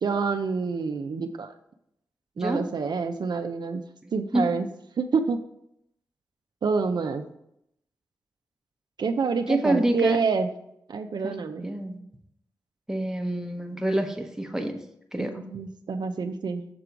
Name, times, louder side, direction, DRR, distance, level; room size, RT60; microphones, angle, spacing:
voice 1, 0.0-1.5 2.4-3.8 4.1-4.7 5.0-5.4 6.6-7.2 9.0-10.5 10.9-11.7 15.2-16.7, right 5 dB, 70° right, 6 dB, 0.4 m, -27 dB
voice 2, 9.5-10.2 11.2-12.0 12.9-14.8 15.1-15.4, right 1 dB, 5° right, 4 dB, 0.9 m, -27 dB
6.8 x 3.7 x 4.5 m, 0.77 s
cardioid pair, 50°, 8 cm